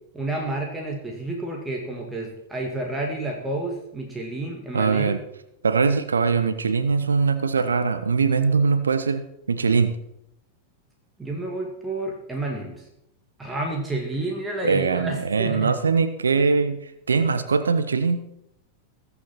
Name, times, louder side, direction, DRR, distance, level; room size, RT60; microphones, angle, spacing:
voice 1, 0.1-5.2 11.2-12.8 13.4-15.7, right 2 dB, 10° right, 0 dB, 2.1 m, -30 dB
voice 2, 4.7-5.2 5.6-10.0 14.6-18.2, right 5 dB, 70° right, 12 dB, 0.9 m, -22 dB
20.5 x 6.9 x 4.4 m, 0.77 s
figure-of-eight pair, 90°, 0 cm